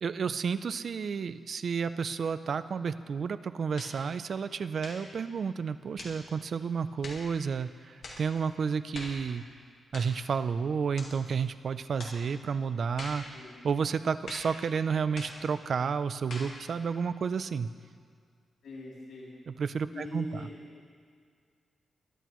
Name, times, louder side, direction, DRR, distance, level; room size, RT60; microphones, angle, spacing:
voice 1, 0.0-9.4 9.9-13.2 13.6-17.7 19.5-20.5, right 6 dB, 45° right, 12 dB, 0.4 m, -31 dB
sound 1, 3.8-4.0 4.8-5.1 6.0-6.2 7.0-7.3 8.0-8.3 8.9-9.2 9.9-10.2 11.0-11.2 12.0-12.2 13.0-13.3 14.3-14.6 15.2-15.4 16.3-16.6, left 2 dB, 60° left, 2.2 m, -43 dB
voice 2, 18.6-19.3 19.9-20.6, left 1 dB, 85° left, -6 dB, 3.0 m, -42 dB
22.0 x 11.0 x 3.1 m, 2.1 s
wide cardioid pair, 170°, 0 cm